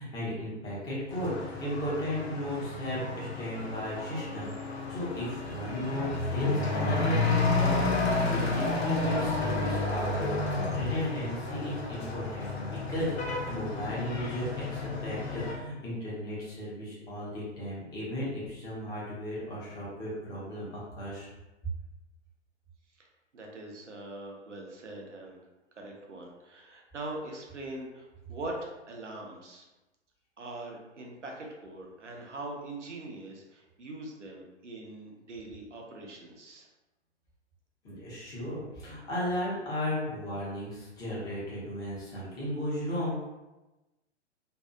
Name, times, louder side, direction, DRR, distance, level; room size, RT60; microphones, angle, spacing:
voice 1, 0.0-21.3 37.8-43.2, equal, 10° left, -7 dB, 0.6 m, -35 dB
Truck / Accelerating revving vroom, 1.1-15.5, left 3 dB, 60° left, 0.7 m, -31 dB
voice 2, 23.3-25.4 25.8-29.6 30.4-36.7, right 2 dB, 85° right, 0 dB, 0.6 m, -42 dB
2.6 x 2.3 x 2.2 m, 1.1 s
figure-of-eight pair, 115°, 35 cm